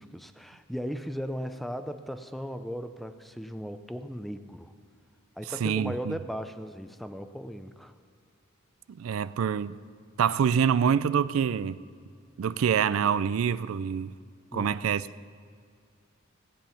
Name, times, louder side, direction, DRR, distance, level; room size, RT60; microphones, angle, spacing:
voice 1, 0.0-4.7 5.4-7.9 14.5-14.7, equal, ahead, 0.4 m, -37 dB
voice 2, 5.5-6.1 8.9-9.8 10.2-11.8 12.4-14.1 14.5-15.1, right 7 dB, 90° right, 0.4 m, -26 dB
17.0 x 8.9 x 5.7 m
head